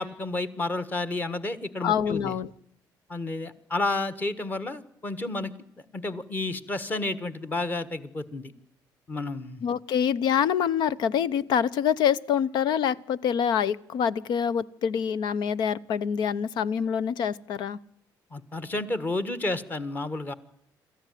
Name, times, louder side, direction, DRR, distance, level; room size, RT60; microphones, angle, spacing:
voice 1, 0.0-2.3 3.1-5.5 5.9-8.5 9.1-9.6 18.3-20.3, left 2 dB, 20° left, 14 dB, 1.4 m, -31 dB
voice 2, 1.8-2.5 9.6-17.8, left 8 dB, 70° left, 18 dB, 0.9 m, -26 dB
27.0 x 14.0 x 9.2 m, 0.75 s
cardioid pair, 175°, 8 cm